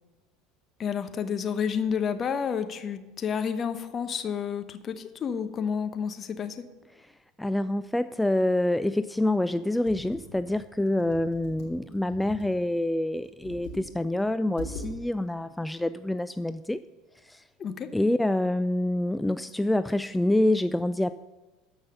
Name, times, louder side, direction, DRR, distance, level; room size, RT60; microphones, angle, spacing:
voice 1, 0.8-6.7 17.6-17.9, left 7 dB, 35° left, 10 dB, 0.9 m, -30 dB
voice 2, 6.9-16.8 17.1-17.5 17.9-21.1, left 1 dB, 5° left, 12 dB, 0.3 m, -27 dB
Computer keyboard, 9.9-12.6 13.2-13.9 14.2-14.3 14.6-14.9, left 2 dB, 60° left, 3.1 m, -42 dB
13.0 x 5.5 x 6.6 m, 1.2 s
hypercardioid pair, 75°, 0 cm